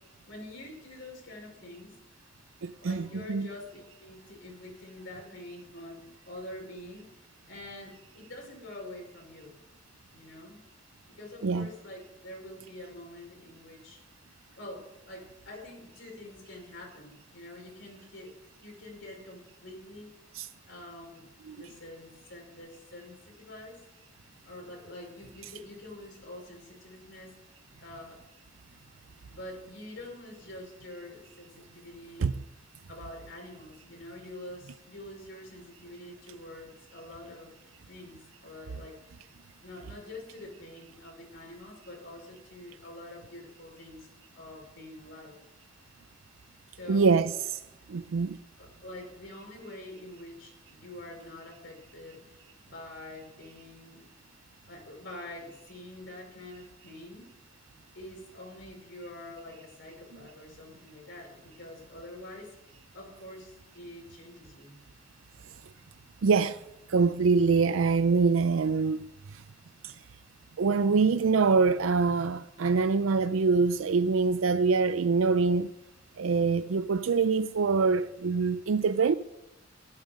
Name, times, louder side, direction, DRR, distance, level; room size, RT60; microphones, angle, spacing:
voice 1, 0.3-2.0 2.8-9.6 10.1-10.6 11.1-14.0 14.6-18.4 18.6-20.1 20.7-23.9 24.4-27.4 27.8-28.3 29.3-32.4 32.9-37.5 37.9-39.1 39.6-44.1 44.3-45.4 46.7-47.2 48.6-54.1 54.7-57.3 57.9-62.6 62.9-64.8, left 1 dB, 65° left, 5.5 m, -46 dB
voice 2, 2.6-3.5 11.4-11.7 20.3-20.5 21.5-21.6 32.2-32.4 46.9-47.3 47.9-48.4 66.2-66.6 66.9-69.4 69.8-70.0 70.6-75.7 76.2-79.2, right 4 dB, 80° right, 0.5 m, -25 dB
14.0 x 12.0 x 5.2 m
head